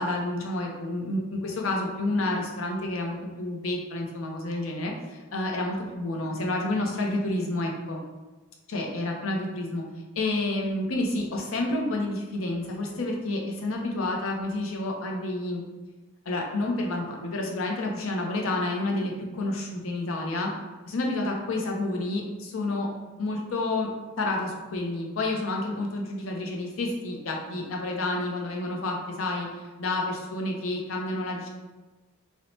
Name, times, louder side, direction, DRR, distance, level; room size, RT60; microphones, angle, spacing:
voice 1, 0.0-8.0 8.7-9.8 10.2-15.6 16.3-20.5 20.9-22.9 23.2-23.9 24.2-29.5 29.8-31.5, left 2 dB, 85° left, 0 dB, 0.5 m, -29 dB
2.7 x 2.1 x 2.9 m, 1.2 s
head